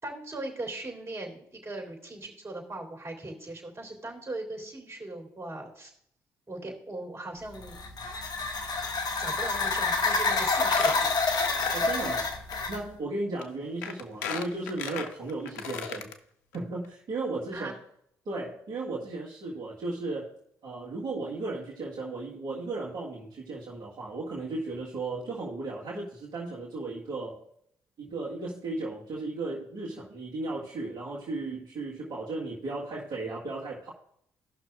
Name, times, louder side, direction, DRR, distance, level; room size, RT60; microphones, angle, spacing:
voice 1, 0.0-6.0 6.5-7.8 9.2-11.3 17.5-17.8, right 2 dB, 30° right, 2 dB, 3.1 m, -39 dB
sound 1, 7.5-12.8, left 3 dB, 50° left, 1.3 m, -28 dB
Squeak, 10.1-10.3 10.6-12.2 12.5-12.6 13.4-13.5 13.8-16.1 16.5-16.6 16.8-16.9, left 7 dB, 85° left, 0.6 m, -36 dB
voice 2, 11.7-12.3 12.7-16.1 16.5-17.7 18.3-20.3 20.6-27.4 28.0-33.9, right 2 dB, 55° right, -5 dB, 1.8 m, -35 dB
16.0 x 6.0 x 2.4 m, 0.70 s
hypercardioid pair, 45°, 9 cm